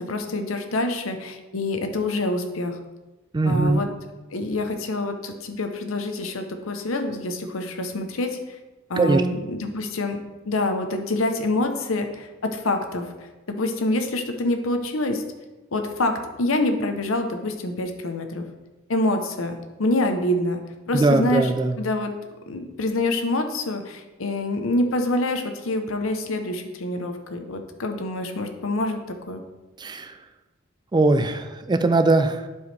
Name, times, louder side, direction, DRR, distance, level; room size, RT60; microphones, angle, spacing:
voice 1, 0.0-2.8 3.4-3.9 4.3-8.6 8.9-13.1 13.5-15.2 15.7-18.5 18.9-19.5 19.8-20.6 20.9-21.5 21.8-22.1 22.5-29.0 29.3-29.4, left 2 dB, 80° left, 6 dB, 0.9 m, -26 dB
voice 2, 3.3-3.8 9.0-9.2 20.9-21.7 29.8-30.1 30.9-32.5, right 2 dB, 20° right, 9 dB, 0.4 m, -20 dB
11.0 x 4.8 x 3.3 m, 1.1 s
head